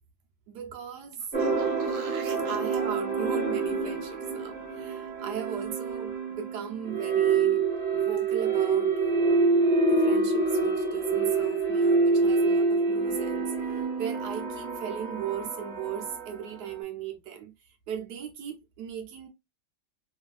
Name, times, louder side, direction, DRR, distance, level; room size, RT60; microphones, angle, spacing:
voice 1, 0.5-1.3 1.7-1.8 2.4-7.6 7.9-8.9 9.9-19.3, right 8 dB, 65° right, 1.1 m, -37 dB
sound 1, 1.1-2.6 7.4-7.5, right 6 dB, 80° right, 1.5 m, -45 dB
sound 2, 1.3-16.6, right 4 dB, 35° right, 1.1 m, -26 dB
3.1 x 2.7 x 2.3 m
omnidirectional pair, 2.2 m